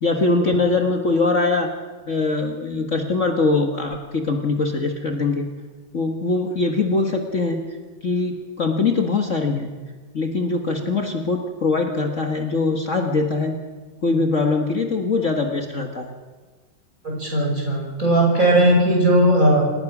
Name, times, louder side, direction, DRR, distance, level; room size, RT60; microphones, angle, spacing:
voice 1, 0.0-1.7 2.1-5.5 5.9-7.6 8.0-9.7 10.1-13.6 14.0-16.1, left 3 dB, 40° left, 2 dB, 1.7 m, -22 dB
voice 2, 17.0-19.6, right 1 dB, 40° right, -1 dB, 6.5 m, -17 dB
27.5 x 18.5 x 6.1 m, 1.4 s
omnidirectional pair, 2.1 m